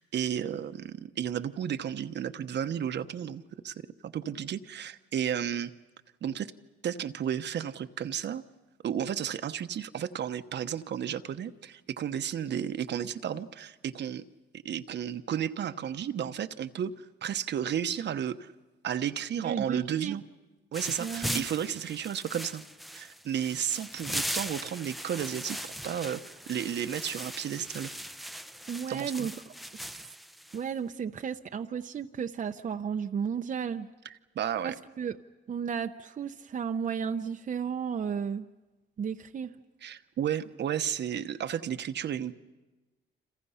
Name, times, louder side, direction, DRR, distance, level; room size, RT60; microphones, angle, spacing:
voice 1, 0.0-3.7 4.0-5.7 6.2-6.5 6.8-8.4 8.8-14.2 14.6-16.9 17.2-18.5 18.8-20.2 20.7-22.6 22.9-26.2 26.5-27.9 28.9-29.3 34.3-34.7 39.8-42.3, right 9 dB, 60° right, 10 dB, 1.0 m, -33 dB
voice 2, 19.4-20.2 21.0-21.4 28.7-29.5 30.5-33.9 34.6-35.2 35.5-38.5 39.0-39.5, right 7 dB, 40° right, 6 dB, 0.8 m, -33 dB
sound 1, 20.7-30.6, equal, ahead, 0.7 m, -39 dB
29.5 x 27.0 x 5.7 m, 1.2 s
cardioid pair, 90°, 20 cm